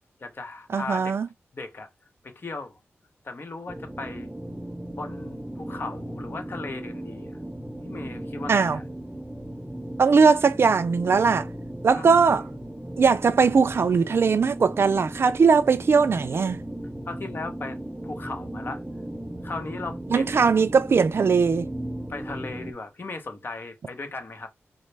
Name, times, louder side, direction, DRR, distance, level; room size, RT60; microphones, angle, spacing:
voice 1, 0.2-1.2 1.5-1.9 2.2-2.8 3.2-4.3 4.9-7.4 7.8-8.8 11.9-12.5 17.1-17.8 18.0-18.8 19.4-20.6 22.1-24.5, left 3 dB, 50° left, 0.9 m, -37 dB
voice 2, 0.7-1.3 8.5-8.8 10.0-11.5 11.8-12.4 13.0-16.6 20.1-21.7, right 5 dB, 60° right, 0.4 m, -20 dB
sound 1, 3.7-22.7, right 1 dB, 10° right, 0.6 m, -36 dB
3.9 x 2.0 x 3.3 m
cardioid pair, 65°, 5 cm